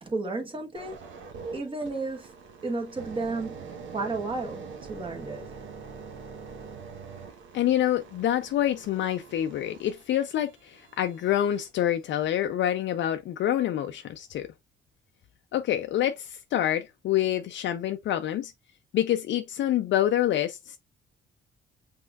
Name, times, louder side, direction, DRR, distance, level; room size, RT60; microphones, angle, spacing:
voice 1, 0.0-1.0 1.5-2.3 2.6-5.5, right 3 dB, 25° right, 1.5 m, -33 dB
sound 1, 0.7-11.7 12.2-12.5, right 5 dB, 75° right, 1.0 m, -44 dB
voice 2, 7.5-14.5 15.5-18.5 18.9-20.8, left 11 dB, 65° left, 0.5 m, -27 dB
5.6 x 3.6 x 2.3 m
cardioid pair, 90°, 20 cm